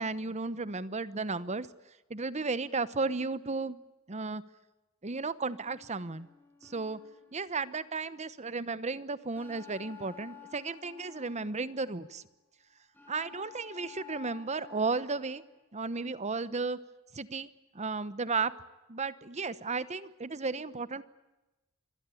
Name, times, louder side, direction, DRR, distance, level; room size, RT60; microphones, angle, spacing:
voice 1, 0.0-1.7 2.1-3.8 4.1-4.4 5.0-6.3 6.6-7.0 7.3-12.2 13.1-15.4 15.7-16.8 17.1-17.5 17.7-18.5 18.9-21.0, right 4 dB, 30° right, 15 dB, 1.0 m, -34 dB
sound 1, 5.6-8.0 9.4-12.2 12.9-15.6, left 9 dB, 10° left, 6.2 m, -53 dB
26.0 x 20.5 x 8.6 m, 1.0 s
head